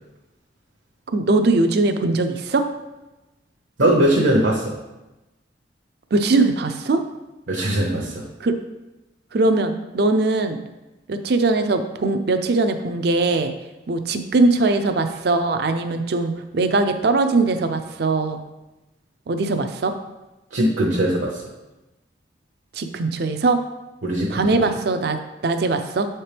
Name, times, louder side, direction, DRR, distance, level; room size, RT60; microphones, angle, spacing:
voice 1, 1.1-2.7 6.1-7.0 8.1-8.6 9.3-10.6 11.1-13.5 13.9-18.4 19.3-19.9 22.7-23.6 24.3-26.1, right 3 dB, 55° right, 8 dB, 0.5 m, -21 dB
voice 2, 3.8-4.7 7.5-8.2 20.5-21.4 24.0-24.7, right 1 dB, 70° right, -2 dB, 0.8 m, -20 dB
7.3 x 4.3 x 3.4 m, 1.0 s
head